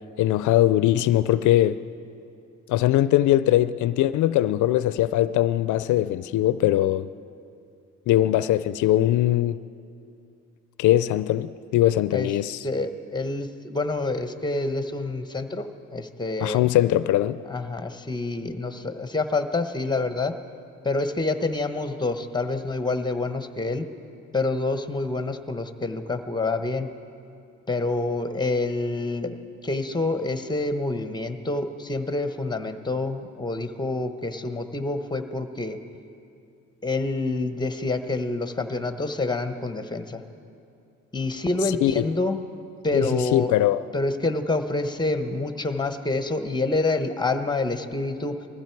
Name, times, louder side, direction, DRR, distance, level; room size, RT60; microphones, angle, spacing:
voice 1, 0.2-1.8 2.7-7.1 8.1-9.6 10.8-12.6 16.4-17.4 41.8-41.9 42.9-43.0 43.3-43.8, left 13 dB, 75° left, 15 dB, 0.4 m, -21 dB
voice 2, 12.6-16.6 17.5-20.3 20.8-23.9 24.3-26.9 27.7-29.4 29.6-35.8 36.8-40.4 41.1-42.4 42.8-43.5 43.9-48.5, left 2 dB, 15° left, 9 dB, 0.9 m, -27 dB
21.0 x 14.5 x 4.6 m, 2.5 s
cardioid pair, 90°, 30 cm